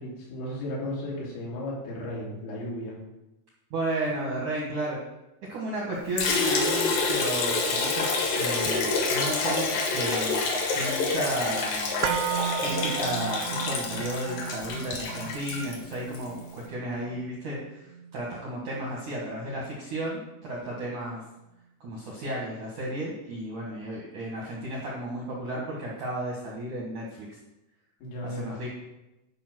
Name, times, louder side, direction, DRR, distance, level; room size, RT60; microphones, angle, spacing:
voice 1, 0.0-3.0 28.0-28.6, left 1 dB, 80° left, -4 dB, 5.5 m, -35 dB
voice 2, 3.7-5.0 5.5-8.1 8.3-9.6 9.9-10.4 10.7-12.0 12.6-21.2 21.8-27.3 28.2-28.7, right 1 dB, 70° right, -3 dB, 1.9 m, -33 dB
Liquid, 6.2-16.3, left 3 dB, 60° left, 2.6 m, -27 dB
sound 1, 12.0-20.1 20.4-20.5, right 9 dB, 90° right, 3.2 m, -35 dB
12.0 x 5.1 x 6.1 m, 0.94 s
omnidirectional pair, 5.7 m